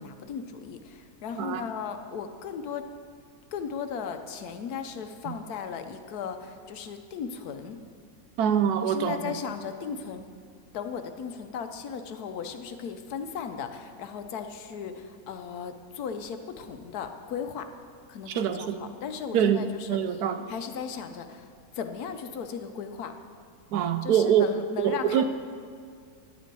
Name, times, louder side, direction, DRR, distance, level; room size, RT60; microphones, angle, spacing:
voice 1, 0.0-2.8 3.5-7.8 8.8-10.3 10.7-17.7 18.1-20.0 20.5-21.5 21.7-23.1 24.0-25.2, left 6 dB, 75° left, 7 dB, 1.2 m, -36 dB
voice 2, 8.4-9.4 18.3-18.8 19.3-20.5 23.7-25.2, right 8 dB, 80° right, 9 dB, 1.2 m, -25 dB
11.0 x 9.5 x 4.6 m, 2.2 s
omnidirectional pair, 1.7 m